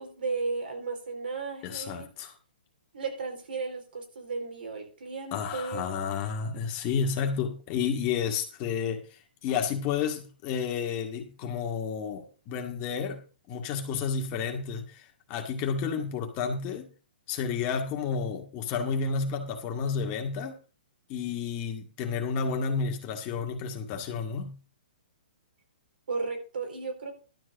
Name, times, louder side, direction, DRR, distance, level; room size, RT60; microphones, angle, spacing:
voice 1, 0.0-2.1 2.9-5.9 26.1-27.1, right 4 dB, 80° right, 4.3 m, -34 dB
voice 2, 1.6-2.3 5.3-9.0 9.4-13.2 13.5-15.0 15.3-16.9 17.3-20.6 21.1-24.5, left 6 dB, 30° left, 2.0 m, -31 dB
12.0 x 4.6 x 7.7 m
hypercardioid pair, 155°, 5 cm